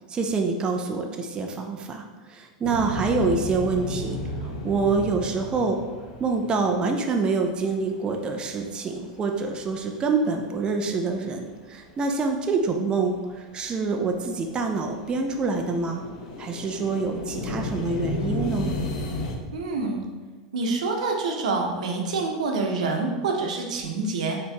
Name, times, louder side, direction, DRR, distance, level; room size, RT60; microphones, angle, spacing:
voice 1, 0.1-5.8 6.2-16.0 16.4-18.7, right 4 dB, 25° right, 3 dB, 0.4 m, -26 dB
sound 1, 2.6-10.2 10.5-11.6 11.9-19.4, left 2 dB, 75° left, 0.6 m, -34 dB
voice 2, 19.5-20.0 20.5-24.4, right 3 dB, 85° right, 1 dB, 0.7 m, -26 dB
4.3 x 2.9 x 3.4 m, 1.3 s
supercardioid pair, 120°, 4 cm